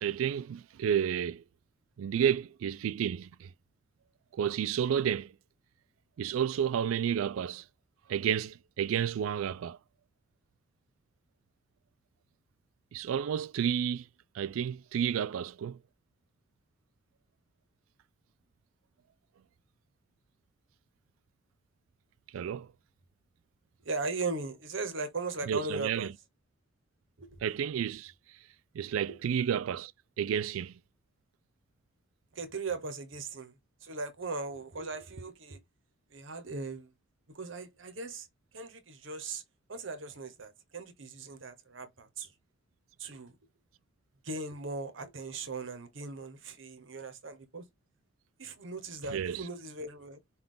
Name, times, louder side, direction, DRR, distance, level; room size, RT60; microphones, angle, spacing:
voice 1, 0.0-1.4 2.0-3.5 4.3-5.3 6.2-7.6 8.1-9.8 12.9-14.1 14.3-15.8 22.3-22.7 25.4-26.1 27.4-28.1 28.7-29.9 30.2-30.7 49.0-49.5, right 8 dB, 90° right, 0.3 m, -31 dB
voice 2, 23.8-26.1 27.2-27.4 29.1-29.2 32.3-33.6 33.8-35.6 36.1-36.9 37.3-38.3 38.5-39.4 39.7-42.3 43.0-43.4 44.2-47.6 48.4-50.2, right 3 dB, 70° right, 1.0 m, -38 dB
5.6 x 2.4 x 3.7 m
head